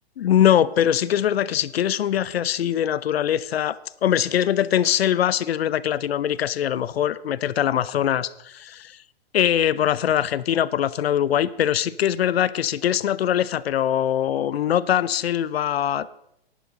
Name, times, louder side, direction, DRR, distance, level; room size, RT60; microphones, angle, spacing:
voice 1, 0.2-8.9 9.3-16.1, left 10 dB, 75° left, 18 dB, 0.7 m, -22 dB
11.0 x 10.0 x 5.3 m, 0.79 s
hypercardioid pair, 125°, 31 cm